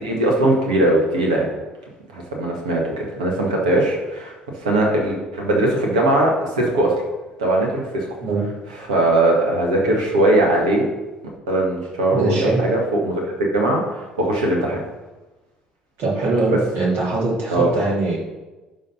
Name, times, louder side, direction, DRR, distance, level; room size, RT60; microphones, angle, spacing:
voice 1, 0.0-1.5 2.1-4.3 4.6-6.9 7.4-8.1 8.7-10.9 11.5-13.2 13.5-14.8 16.5-16.6 17.5-17.7, right 1 dB, 75° right, -1 dB, 2.0 m, -20 dB
voice 2, 12.1-12.6 16.0-18.2, right 3 dB, 55° right, -4 dB, 3.1 m, -22 dB
11.0 x 3.9 x 5.7 m, 1.1 s
figure-of-eight pair, 55°, 4 cm